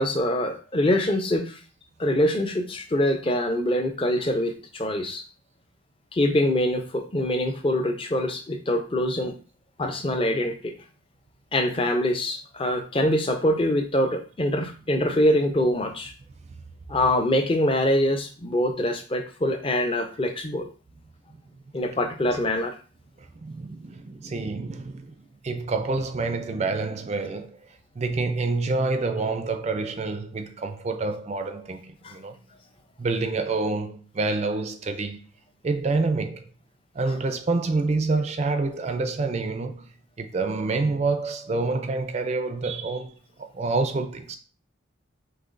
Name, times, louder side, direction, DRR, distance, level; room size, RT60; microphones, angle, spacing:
voice 1, 0.0-1.6 2.0-5.2 6.1-9.3 9.8-10.7 11.5-16.1 16.9-20.7 21.7-22.7 32.0-32.1, left 1 dB, 25° left, 0.5 m, -24 dB
voice 2, 23.2-25.1 25.4-27.6 28.0-32.4 33.0-35.2 35.6-36.5 36.9-39.9 40.2-43.2 43.5-44.4, right 3 dB, 30° right, 0.3 m, -27 dB
5.5 x 3.1 x 2.5 m
head